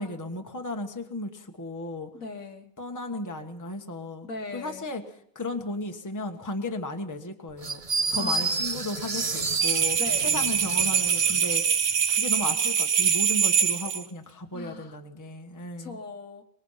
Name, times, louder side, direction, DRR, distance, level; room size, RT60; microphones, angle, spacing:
voice 1, 0.0-2.1 2.8-4.3 4.5-5.0 5.3-7.8 8.1-11.7 12.1-16.0, left 2 dB, 10° left, 5 dB, 1.4 m, -35 dB
voice 2, 2.1-2.7 4.2-4.9 8.2-8.5 10.0-10.3 14.5-15.0 15.8-16.4, left 3 dB, 60° left, 5 dB, 1.9 m, -39 dB
sound 1, 7.6-11.6, right 4 dB, 30° right, 0.7 m, -30 dB
sound 2, 9.6-14.0, right 7 dB, 60° right, 1.5 m, -24 dB
24.0 x 21.0 x 5.8 m, 0.69 s
omnidirectional pair, 1.6 m